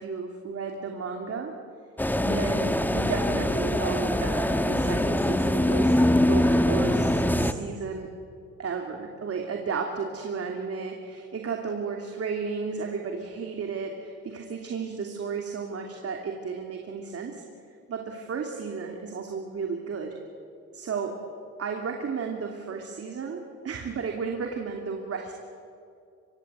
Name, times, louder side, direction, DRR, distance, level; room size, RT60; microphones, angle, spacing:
voice 1, 0.0-1.5 2.2-8.1 8.6-17.4 17.9-20.2 20.7-21.2 21.6-25.3, right 5 dB, 50° right, 2 dB, 2.8 m, -33 dB
sound 1, 2.0-7.5, left 1 dB, 5° left, 1.4 m, -23 dB
25.0 x 22.0 x 8.2 m, 2.5 s
cardioid pair, 90°, 30 cm